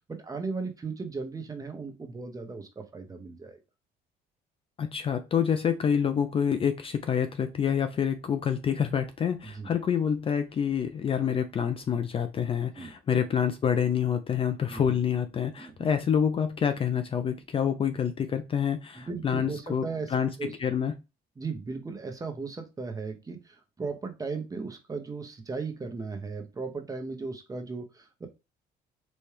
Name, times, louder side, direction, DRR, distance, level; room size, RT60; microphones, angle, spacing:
voice 1, 0.1-3.6 9.4-9.7 12.8-12.9 14.7-15.0 15.6-15.9 19.0-20.5 21.4-28.3, right 4 dB, 20° right, 0.9 m, -36 dB
voice 2, 4.8-19.8 20.1-20.3 20.6-20.9, left 8 dB, 35° left, 0.4 m, -27 dB
4.3 x 2.3 x 3.3 m
cardioid pair, 110°, 17 cm